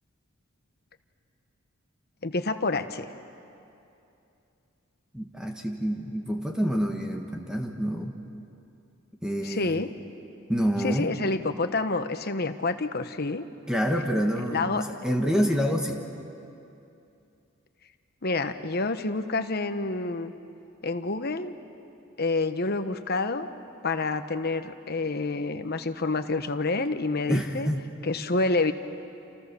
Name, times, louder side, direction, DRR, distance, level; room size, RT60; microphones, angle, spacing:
voice 1, 2.2-3.1 9.4-9.9 10.8-13.5 14.5-14.9 18.2-20.3 20.8-21.6 22.2-23.5 23.8-27.7 28.0-28.7, left 3 dB, 50° left, 9 dB, 1.2 m, -28 dB
voice 2, 5.1-8.2 9.2-9.8 10.5-11.1 13.7-16.0 27.3-27.8, equal, 5° right, 2 dB, 1.6 m, -27 dB
29.5 x 28.0 x 7.0 m, 2.7 s
head